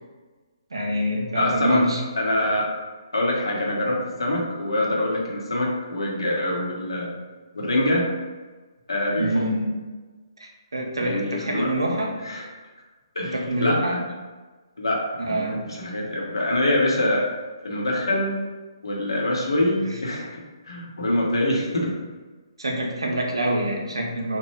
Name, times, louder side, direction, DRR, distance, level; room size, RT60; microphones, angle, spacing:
voice 1, 0.7-2.0 9.2-9.8 10.4-12.1 13.3-14.0 15.2-15.6 22.6-24.4, right 1 dB, 70° right, 0 dB, 0.6 m, -26 dB
voice 2, 1.3-1.8 2.2-2.7 3.1-7.1 7.5-8.1 8.9-9.5 11.0-11.7 12.2-12.5 13.1-14.0 14.8-17.3 17.6-18.4 18.8-21.9, left 1 dB, 65° left, -2 dB, 0.8 m, -25 dB
2.9 x 2.1 x 3.3 m, 1.3 s
figure-of-eight pair, 135°, 3 cm